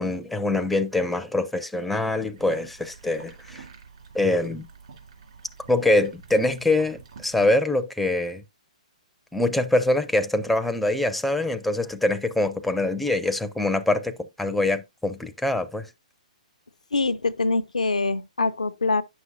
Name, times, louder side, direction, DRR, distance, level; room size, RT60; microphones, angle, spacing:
voice 1, 0.0-3.6 4.1-4.7 5.7-8.4 9.3-15.9, left 2 dB, ahead, 0.5 m, -24 dB
sound 1, 2.4-7.5, right 5 dB, 60° right, 2.5 m, -47 dB
voice 2, 16.9-19.0, left 3 dB, 80° left, 0.4 m, -24 dB
9.2 x 6.3 x 2.6 m
figure-of-eight pair, 120°, 4 cm